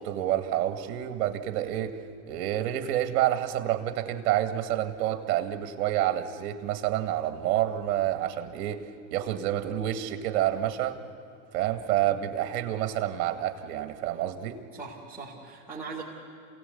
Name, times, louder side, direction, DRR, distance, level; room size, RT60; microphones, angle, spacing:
voice 1, 0.0-2.0 2.3-8.8 9.1-11.0 11.5-14.6, right 12 dB, 60° right, 8 dB, 2.0 m, -28 dB
voice 2, 14.7-16.0, right 4 dB, 5° right, -8 dB, 3.6 m, -40 dB
27.5 x 17.5 x 8.4 m, 2.5 s
hypercardioid pair, 120°, 48 cm